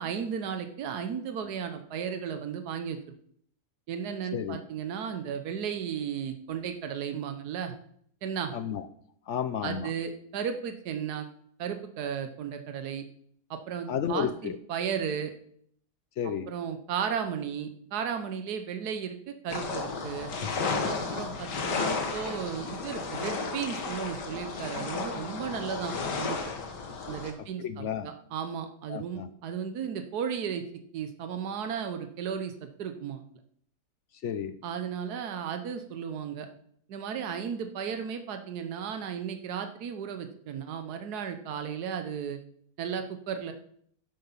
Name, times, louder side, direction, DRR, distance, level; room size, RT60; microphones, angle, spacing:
voice 1, 0.0-3.0 3.9-7.7 8.2-8.5 9.6-11.3 11.6-13.0 13.5-15.3 16.5-20.3 20.9-26.5 27.1-30.6 30.9-32.5 32.8-33.2 34.6-36.5 36.9-42.4 42.8-43.5, right 7 dB, 70° right, 7 dB, 1.5 m, -34 dB
voice 2, 8.5-8.8 9.3-9.9 13.9-14.6 16.2-16.5 27.6-28.1 28.9-29.3 34.2-34.6, left 8 dB, 65° left, 12 dB, 0.7 m, -32 dB
sound 1, 19.5-27.3, left 4 dB, 90° left, 2.1 m, -33 dB
11.0 x 8.0 x 5.6 m, 0.65 s
omnidirectional pair, 1.8 m